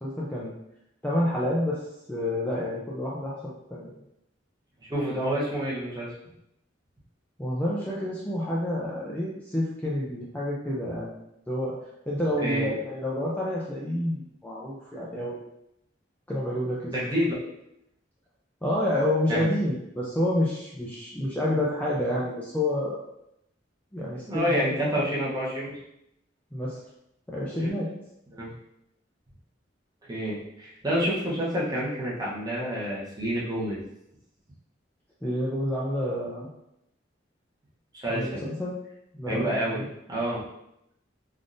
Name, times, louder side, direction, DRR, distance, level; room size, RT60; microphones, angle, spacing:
voice 1, 0.0-0.5 1.0-3.9 7.4-11.1 11.5-11.7 12.1-15.4 16.3-16.9 18.6-23.0 23.9-25.0 26.5-26.8 27.3-27.9 35.2-36.5 38.1-38.8 39.1-39.9, left 1 dB, 10° left, -6 dB, 0.4 m, -29 dB
voice 2, 4.8-6.1 10.9-11.0 12.4-12.7 16.9-17.3 19.3-19.5 24.3-25.8 27.6-27.7 28.3-28.5 30.1-33.8 37.9-38.4 39.2-40.4, equal, 20° right, -6 dB, 0.9 m, -28 dB
3.5 x 2.5 x 2.5 m, 0.81 s
head